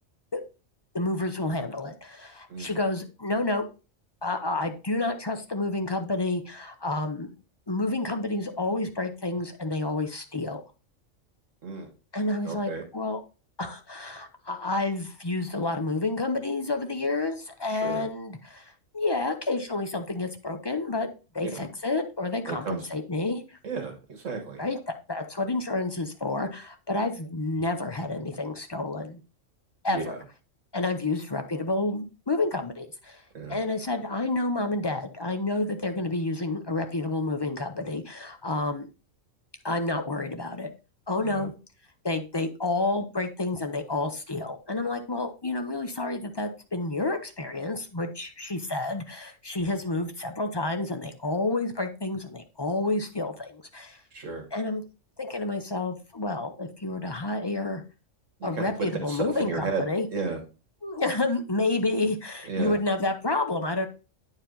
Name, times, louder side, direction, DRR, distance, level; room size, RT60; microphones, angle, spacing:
voice 1, 0.9-3.7 4.2-7.3 7.7-10.6 12.1-13.2 13.6-21.1 21.3-23.6 24.6-29.2 29.8-30.2 30.7-33.2 33.5-38.9 39.6-40.7 41.1-41.5 42.0-54.0 54.5-54.8 55.2-57.8 58.4-60.1 60.8-63.9, left 2 dB, 30° left, 7 dB, 0.5 m, -29 dB
voice 2, 2.5-2.8 11.6-11.9 12.4-12.8 17.7-18.0 21.4-21.7 22.4-22.9 23.6-24.6 29.9-30.2 33.3-33.6 41.2-41.5 54.1-54.4 58.4-58.7 59.1-59.8 60.1-60.4 62.5-62.8, right 4 dB, 75° right, 3 dB, 1.8 m, -33 dB
8.7 x 4.7 x 3.8 m, 0.32 s
omnidirectional pair, 1.3 m